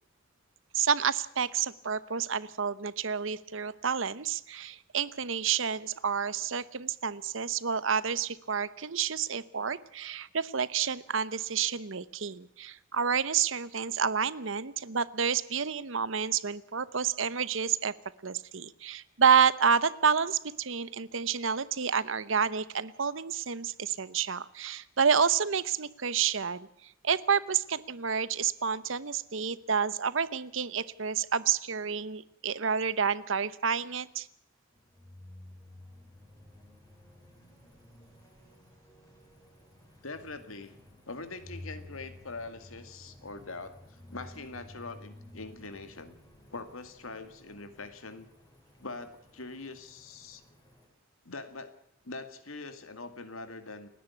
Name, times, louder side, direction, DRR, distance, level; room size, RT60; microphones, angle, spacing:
voice 1, 0.7-17.9 18.2-26.7 27.0-34.3, right 6 dB, 65° right, 17 dB, 0.9 m, -29 dB
sound 1, 34.7-50.9, left 1 dB, 15° left, 4.0 m, -53 dB
voice 2, 40.0-40.8 41.1-46.2 46.5-48.3 48.8-50.4 51.2-51.8 52.0-53.9, left 3 dB, 80° left, 10 dB, 2.3 m, -43 dB
30.0 x 10.5 x 8.4 m, 0.73 s
head